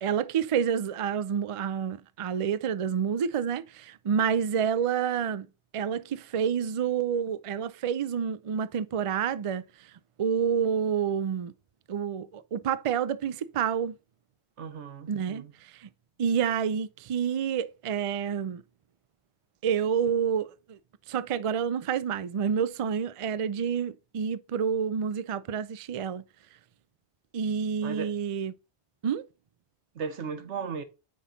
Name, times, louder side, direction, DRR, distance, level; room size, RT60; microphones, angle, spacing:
voice 1, 0.0-5.5 5.7-9.6 10.2-11.5 11.9-14.0 15.1-15.9 16.2-18.6 19.6-20.8 21.1-26.2 27.3-28.5 29.0-29.3, right 7 dB, 60° right, 0.3 m, -28 dB
voice 2, 14.6-15.5 27.8-28.1 30.0-30.8, right 6 dB, 90° right, 1.3 m, -36 dB
9.4 x 3.9 x 4.0 m
omnidirectional pair, 1.1 m